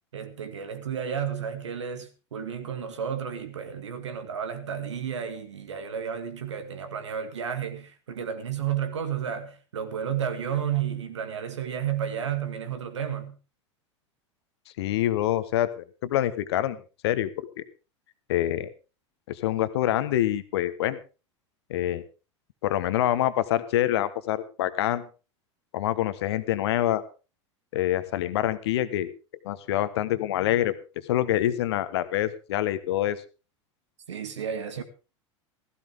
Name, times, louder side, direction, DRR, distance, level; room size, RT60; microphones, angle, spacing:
voice 1, 0.1-13.4 34.1-34.8, right 8 dB, 70° right, 2.1 m, -32 dB
voice 2, 14.8-16.8 17.0-17.6 18.3-18.7 19.3-21.0 21.7-22.0 22.6-25.1 25.7-27.0 27.7-29.1 29.4-30.7 31.1-33.2, left 13 dB, 55° left, 1.3 m, -26 dB
15.5 x 15.5 x 3.5 m
figure-of-eight pair, 85°, 16 cm